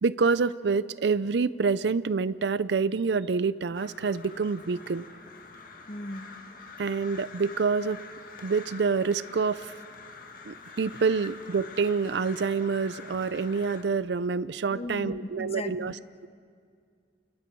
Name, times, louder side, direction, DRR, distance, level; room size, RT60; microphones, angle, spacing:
voice 1, 0.0-5.1 6.8-8.0 8.4-9.7 10.4-15.9, right 5 dB, 75° right, 17 dB, 0.5 m, -27 dB
Crow, 3.7-13.8, left 4 dB, 50° left, 1.9 m, -46 dB
voice 2, 5.9-6.3 14.7-16.0, left 1 dB, 35° left, 10 dB, 0.9 m, -37 dB
29.0 x 28.0 x 4.6 m, 2.2 s
head